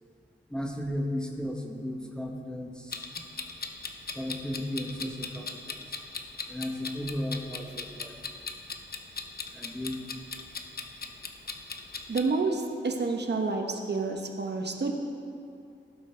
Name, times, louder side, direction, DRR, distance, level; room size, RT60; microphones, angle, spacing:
voice 1, 0.5-3.0 4.1-5.7 6.5-8.2 9.5-10.0, left 1 dB, 5° left, 1 dB, 0.9 m, -35 dB
Clock, 2.9-12.2, left 4 dB, 50° left, 0.7 m, -39 dB
voice 2, 12.1-14.9, right 3 dB, 60° right, 3 dB, 1.0 m, -29 dB
16.5 x 8.1 x 3.3 m, 2.5 s
wide cardioid pair, 125°, 20 cm